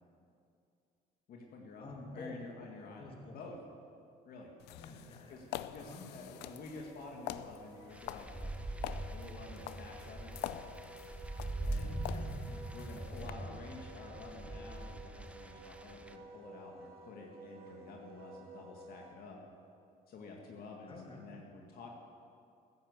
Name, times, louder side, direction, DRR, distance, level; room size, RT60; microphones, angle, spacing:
voice 1, 1.3-3.6 4.3-4.5 5.3-10.4 11.6-12.0 12.7-19.4 20.1-21.9, left 3 dB, 65° left, 0 dB, 1.9 m, -50 dB
voice 2, 1.8-2.4 3.0-3.4 4.8-5.4 5.8-6.1 12.1-12.7 20.9-21.3, left 3 dB, 30° left, 1 dB, 2.7 m, -49 dB
sound 1, 4.6-13.3, left 13 dB, 90° left, 0.5 m, -46 dB
Wind instrument woodwind instrument, 4.8-19.1, right 2 dB, 65° right, 2.2 m, -54 dB
sound 2, 7.9-16.1, right 1 dB, 5° right, 0.8 m, -42 dB
14.5 x 10.0 x 8.0 m, 2.5 s
cardioid pair, 110°, 17 cm